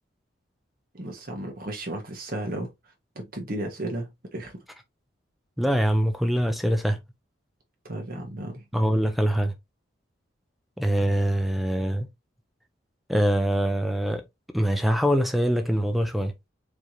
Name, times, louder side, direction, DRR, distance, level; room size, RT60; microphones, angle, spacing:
voice 1, 0.9-2.7 3.1-4.5 7.8-8.6, right 1 dB, 50° right, 1.6 m, -34 dB
voice 2, 5.6-7.0 8.7-9.5 10.8-12.1 13.1-14.2 14.5-16.3, equal, ahead, 0.5 m, -23 dB
4.8 x 3.4 x 2.9 m
head